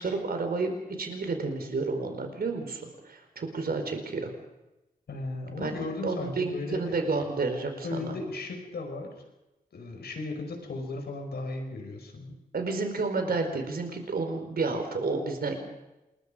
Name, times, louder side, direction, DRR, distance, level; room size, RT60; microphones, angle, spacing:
voice 1, 0.0-4.3 5.6-8.2 12.5-15.6, right 3 dB, 70° right, 5 dB, 4.5 m, -31 dB
voice 2, 5.1-6.9 7.8-9.1 9.7-12.4, left 3 dB, 85° left, 4 dB, 5.3 m, -36 dB
28.0 x 21.5 x 5.1 m, 0.98 s
wide cardioid pair, 85°, 16 cm